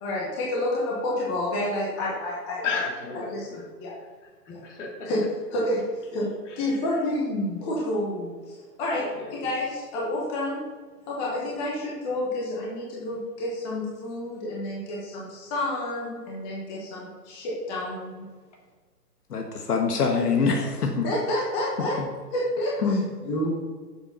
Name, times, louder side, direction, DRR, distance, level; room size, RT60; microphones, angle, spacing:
voice 1, 0.0-2.6 3.3-3.5 3.8-3.9 4.5-4.6 5.1-5.2 5.5-5.8 6.1-6.3 6.6-8.5 8.8-10.6 11.1-18.2 21.0-22.0 22.3-22.7 23.2-23.6, left 1 dB, 10° left, -5 dB, 0.9 m, -29 dB
voice 2, 2.6-3.7 4.5-5.1 6.1-6.2 6.5-6.8 9.1-9.5, left 5 dB, 45° left, -1 dB, 2.7 m, -34 dB
voice 3, 19.3-21.1 22.0-22.1 22.8-23.0, left 4 dB, 70° left, 3 dB, 1.4 m, -24 dB
8.6 x 7.4 x 3.9 m, 1.5 s
hypercardioid pair, 155°, 49 cm